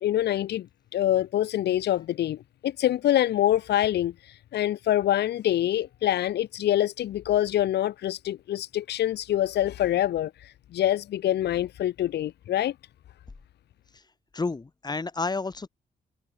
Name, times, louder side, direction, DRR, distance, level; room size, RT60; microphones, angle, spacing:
voice 1, 0.0-0.7 0.9-2.4 2.6-12.7, left 12 dB, 80° left, 0.7 m, -25 dB
voice 2, 14.3-15.7, left 3 dB, 25° left, 2.6 m, -30 dB
cardioid pair, 110°, 17 cm